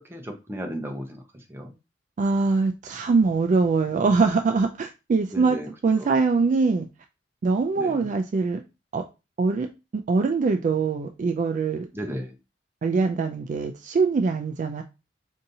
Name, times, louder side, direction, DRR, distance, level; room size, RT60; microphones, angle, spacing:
voice 1, 0.1-1.2 1.5-1.7 5.3-5.7 6.0-6.1 7.8-8.1 11.9-12.3, equal, 15° right, 2 dB, 0.7 m, -34 dB
voice 2, 2.2-5.6 5.8-6.9 7.4-8.6 8.9-9.0 9.4-9.7 9.9-11.9 12.8-14.8, right 4 dB, 40° right, 6 dB, 0.3 m, -23 dB
4.8 x 2.7 x 2.7 m, 0.28 s
head